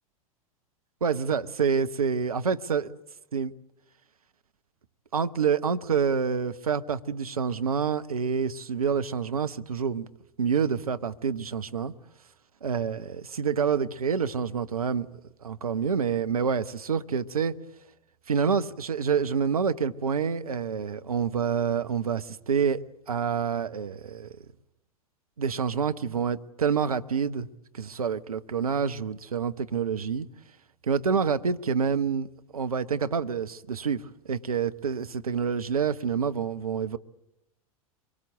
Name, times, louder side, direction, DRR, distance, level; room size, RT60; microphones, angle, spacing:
voice 1, 1.0-2.9 3.3-3.5 5.1-10.1 10.4-11.9 12.6-15.1 15.4-17.5 18.3-22.8 23.1-24.3 25.4-27.5 27.7-30.3 30.8-32.3 32.5-34.0 34.3-37.0, right 6 dB, 75° right, 0.9 m, -27 dB
24.5 x 23.0 x 8.1 m
figure-of-eight pair, 90°, 19 cm